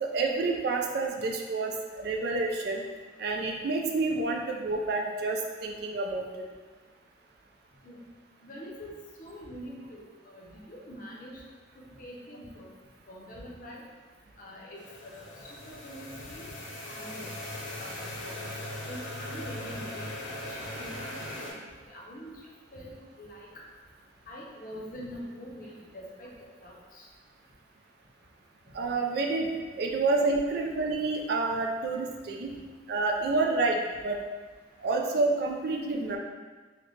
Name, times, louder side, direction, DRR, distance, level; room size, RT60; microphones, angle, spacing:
voice 1, 0.0-2.8 3.2-6.5 28.7-29.5 29.8-32.5 32.9-34.2 34.8-36.2, right 3 dB, 55° right, 1 dB, 0.4 m, -29 dB
voice 2, 8.4-11.4 11.7-12.7 13.1-13.8 14.4-15.3 15.7-16.4 16.9-17.3 17.8-20.1 20.5-21.5 21.8-22.4 22.7-23.5 24.3-26.3 26.6-27.1 32.5-32.6, equal, 45° left, -3 dB, 0.6 m, -44 dB
sound 1, 14.8-21.5, left 1 dB, 75° left, 0.8 m, -39 dB
3.8 x 2.1 x 3.1 m, 1.4 s
head